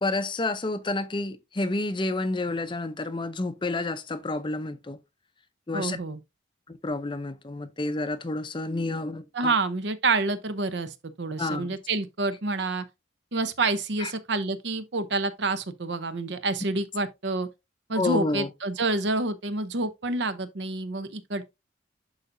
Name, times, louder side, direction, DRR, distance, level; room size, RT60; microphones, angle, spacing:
voice 1, 0.0-5.0 5.7-6.0 6.7-9.5 11.4-11.7 14.0-14.1 18.0-18.5, left 2 dB, 25° left, 0.5 m, -29 dB
voice 2, 5.7-6.2 9.3-12.8 13.3-17.5 17.9-21.4, right 3 dB, 65° right, 0.8 m, -28 dB
11.0 x 4.0 x 2.6 m
head